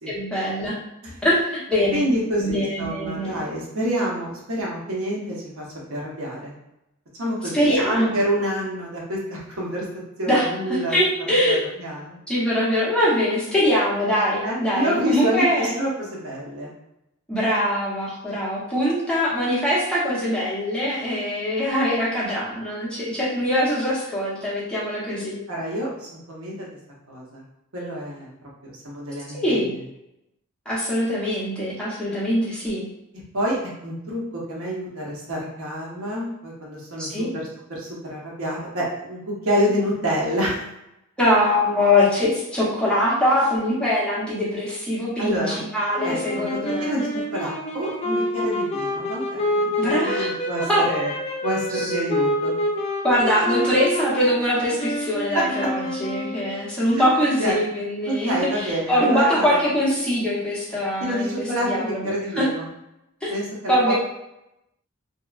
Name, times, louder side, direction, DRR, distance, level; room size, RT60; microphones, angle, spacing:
voice 1, 0.1-0.8 1.2-2.0 2.4-3.4 7.5-8.1 10.3-11.6 12.3-15.7 17.3-25.4 29.3-29.7 30.7-32.8 37.0-37.3 41.2-46.9 49.8-50.3 50.6-50.9 53.0-62.5 63.2-63.3 63.7-63.9, equal, 5° left, -8 dB, 0.7 m, -22 dB
voice 2, 1.9-6.5 7.2-9.8 10.2-11.0 11.5-12.2 14.4-16.7 25.5-26.7 27.1-27.4 27.7-28.3 28.6-29.7 33.3-40.6 45.2-45.6 46.0-46.5 46.8-51.1 51.4-52.5 55.3-55.7 56.9-57.0 57.4-57.6 58.1-59.7 61.0-62.6 63.3-63.9, equal, 75° right, -4 dB, 0.8 m, -27 dB
sound 1, 46.0-56.7, left 1 dB, 30° left, 0.4 m, -27 dB
2.8 x 2.1 x 2.3 m, 0.87 s
head